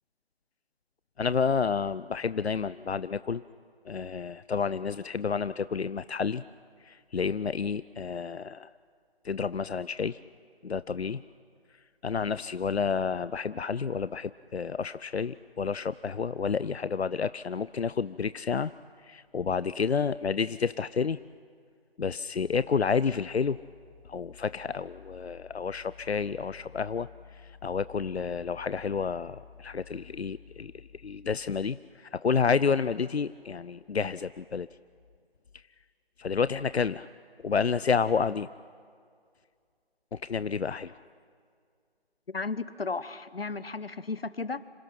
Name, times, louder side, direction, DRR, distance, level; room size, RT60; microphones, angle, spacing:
voice 1, 1.2-3.4 3.9-6.4 6.8-8.7 9.2-10.2 10.6-11.2 12.0-18.7 19.0-21.2 22.0-23.6 24.1-34.7 36.2-37.1 37.4-38.5 40.1-41.0, left 5 dB, 90° left, 16 dB, 0.6 m, -30 dB
voice 2, 42.3-44.6, left 4 dB, 65° left, 16 dB, 1.1 m, -34 dB
29.0 x 26.5 x 5.9 m, 2.2 s
figure-of-eight pair, 170°, 31 cm